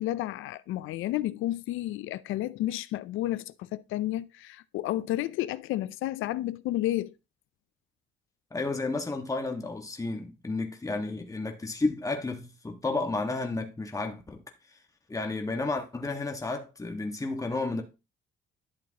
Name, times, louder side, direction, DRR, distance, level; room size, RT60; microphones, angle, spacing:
voice 1, 0.0-7.1, left 15 dB, 85° left, 0.4 m, -31 dB
voice 2, 8.5-14.4 15.1-17.8, left 3 dB, 15° left, 1.5 m, -32 dB
11.5 x 6.9 x 2.9 m
cardioid pair, 90°, 20 cm